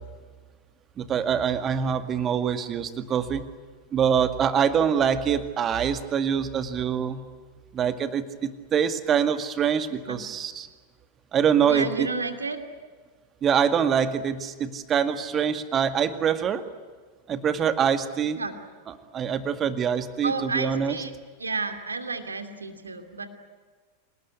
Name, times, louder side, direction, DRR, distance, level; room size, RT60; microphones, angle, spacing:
voice 1, 1.0-3.4 3.9-7.2 7.7-10.7 11.3-12.1 13.4-16.6 17.3-18.4 19.1-20.9, right 8 dB, 25° right, 10 dB, 2.0 m, -24 dB
voice 2, 11.6-12.6 18.4-18.6 20.2-21.1 21.4-23.3, right 4 dB, 75° right, 8 dB, 2.6 m, -31 dB
27.5 x 19.0 x 9.8 m, 1.5 s
figure-of-eight pair, 90°, 0 cm